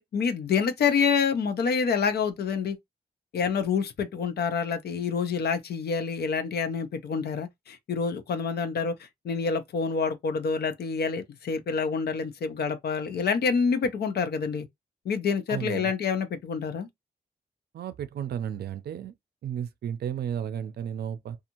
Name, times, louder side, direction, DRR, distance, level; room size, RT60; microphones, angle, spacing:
voice 1, 0.1-2.8 3.3-8.9 9.2-14.7 15.0-16.9, left 5 dB, 70° left, 0.6 m, -27 dB
voice 2, 15.5-15.9 17.7-19.1 19.4-21.4, right 9 dB, 70° right, 0.5 m, -33 dB
2.6 x 2.4 x 2.9 m
cardioid pair, 70°, 17 cm